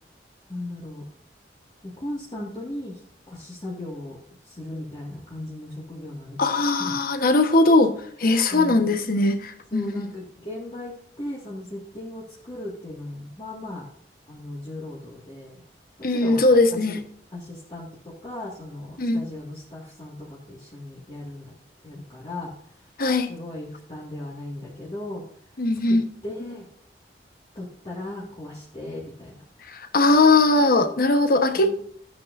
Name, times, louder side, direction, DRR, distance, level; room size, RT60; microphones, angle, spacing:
voice 1, 0.5-1.1 1.8-4.2 4.4-6.9 8.5-8.9 9.7-13.9 14.3-15.6 16.0-17.0 17.3-21.5 21.8-22.9 23.3-25.3 25.9-26.7 27.6-29.4 31.5-31.8, left 1 dB, 30° left, -5 dB, 2.0 m, -37 dB
voice 2, 6.4-7.9 8.2-10.1 16.0-17.0 19.0-19.2 23.0-23.3 25.6-26.0 29.7-31.7, left 2 dB, 55° left, 8 dB, 1.2 m, -20 dB
12.5 x 9.3 x 2.6 m, 0.62 s
head